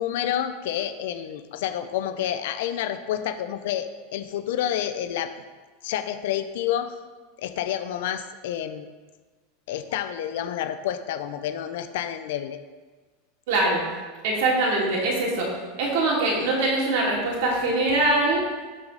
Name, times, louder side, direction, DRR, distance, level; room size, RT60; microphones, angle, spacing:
voice 1, 0.0-5.3 5.8-6.9 7.4-8.9 9.7-12.6, left 10 dB, 70° left, 10 dB, 0.6 m, -29 dB
voice 2, 13.5-13.9 14.2-15.5 15.8-18.5, right 2 dB, 65° right, -3 dB, 2.8 m, -23 dB
12.5 x 4.9 x 4.0 m, 1.4 s
supercardioid pair, 160°, 0 cm